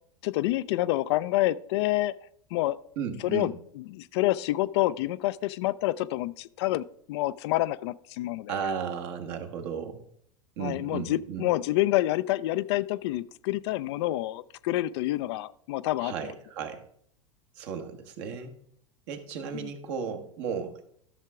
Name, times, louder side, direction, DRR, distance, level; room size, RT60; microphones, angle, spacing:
voice 1, 0.2-2.1 2.5-2.8 3.2-8.5 10.6-16.3 19.5-19.7, left 16 dB, 55° left, 15 dB, 0.4 m, -28 dB
voice 2, 3.0-3.5 8.5-10.0 10.6-11.5 16.0-16.8 17.6-18.5 19.1-20.8, right 7 dB, 55° right, 6 dB, 1.4 m, -35 dB
13.5 x 6.5 x 3.6 m, 0.67 s
figure-of-eight pair, 85°, 17 cm